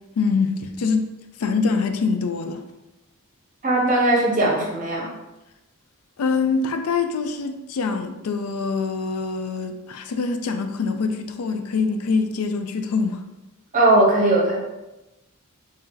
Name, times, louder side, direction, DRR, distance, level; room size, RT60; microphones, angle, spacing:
voice 1, 0.2-2.6 6.2-13.2, left 4 dB, 75° left, 0.4 m, -24 dB
voice 2, 3.6-5.1 13.7-14.6, right 2 dB, 35° right, 0.9 m, -19 dB
3.3 x 2.7 x 3.7 m
head